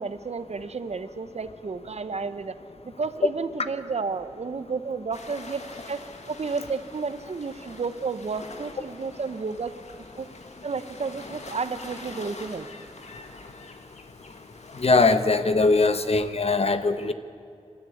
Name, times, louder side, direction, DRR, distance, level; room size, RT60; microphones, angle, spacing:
voice 1, 0.0-2.5 2.8-6.0 6.3-9.7 10.2-10.3 10.6-12.7, right 4 dB, 70° right, 12 dB, 0.9 m, -32 dB
sound 1, 5.1-15.2, left 3 dB, 85° left, 2.2 m, -45 dB
voice 2, 14.8-17.1, left 3 dB, 65° left, 10 dB, 1.2 m, -21 dB
27.0 x 13.0 x 9.5 m, 2.5 s
wide cardioid pair, 80°, 11 cm